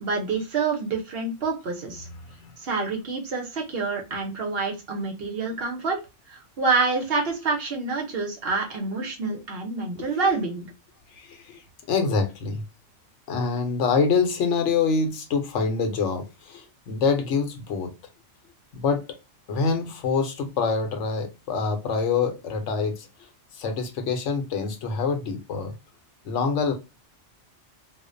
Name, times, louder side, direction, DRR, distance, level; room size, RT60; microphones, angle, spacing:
voice 1, 0.0-2.1 2.6-6.0 6.3-10.7, right 4 dB, 60° right, 0.9 m, -27 dB
voice 2, 10.0-10.3 11.2-11.6 11.9-12.6 13.3-17.9 18.7-19.1 19.5-23.1 23.5-25.7 26.2-26.7, left 5 dB, 80° left, 1.0 m, -25 dB
2.4 x 2.1 x 2.4 m
omnidirectional pair, 1.2 m